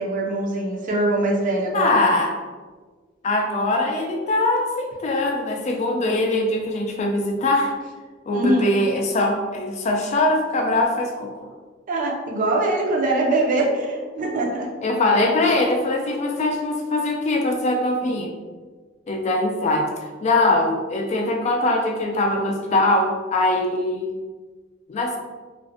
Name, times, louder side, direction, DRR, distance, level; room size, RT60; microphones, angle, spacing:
voice 1, 0.0-2.0 8.3-8.7 11.9-14.7, right 2 dB, 45° right, -1 dB, 0.4 m, -22 dB
voice 2, 1.7-2.4 3.2-7.7 8.3-11.5 14.8-18.3 19.1-24.2 24.9-25.2, left 2 dB, 35° left, 1 dB, 0.3 m, -22 dB
2.5 x 2.1 x 2.5 m, 1.4 s
head